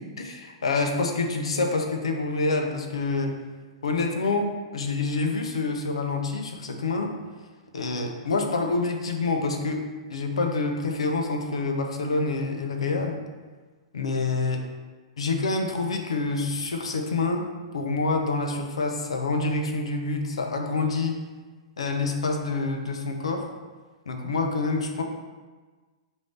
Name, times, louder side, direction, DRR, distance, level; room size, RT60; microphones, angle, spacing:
voice 1, 0.0-3.4 3.8-4.5 4.7-7.1 7.7-13.3 13.9-14.6 15.2-17.5 17.7-21.2 21.8-23.5 24.1-25.0, left 3 dB, 80° left, 3 dB, 0.6 m, -27 dB
5.0 x 2.7 x 3.2 m, 1.4 s
hypercardioid pair, 120°, 3 cm